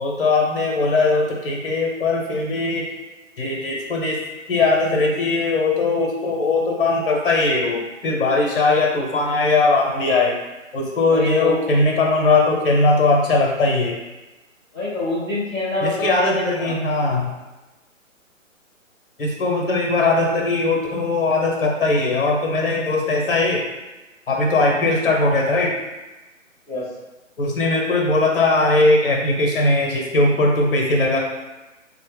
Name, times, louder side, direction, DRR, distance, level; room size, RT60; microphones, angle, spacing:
voice 1, 0.0-2.9 3.4-4.2 4.5-10.4 10.7-14.0 15.8-17.3 19.2-23.6 24.3-25.8 27.4-31.2, left 3 dB, 45° left, 0 dB, 0.8 m, -19 dB
voice 2, 11.1-11.6 14.7-16.7 26.7-26.9, left 2 dB, 5° right, -12 dB, 0.6 m, -26 dB
3.9 x 2.0 x 3.4 m, 1.1 s
figure-of-eight pair, 140°, 40 cm